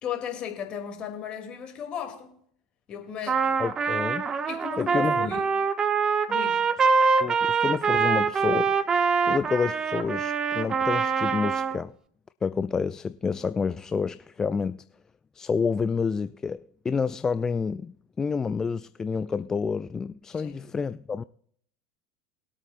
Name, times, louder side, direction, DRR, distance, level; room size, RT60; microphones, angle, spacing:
voice 1, 0.0-2.3 2.9-3.6 4.5-5.5 6.3-6.6 20.3-20.6, left 8 dB, 40° left, 2.7 m, -36 dB
Trumpet, 3.3-11.8, right 5 dB, 30° right, 0.9 m, -24 dB
voice 2, 3.6-4.2 4.8-5.2 7.2-8.8 9.3-11.9 12.4-14.8 15.3-21.2, left 5 dB, 20° left, 0.4 m, -29 dB
21.0 x 8.6 x 2.5 m
hypercardioid pair, 80°, 3 cm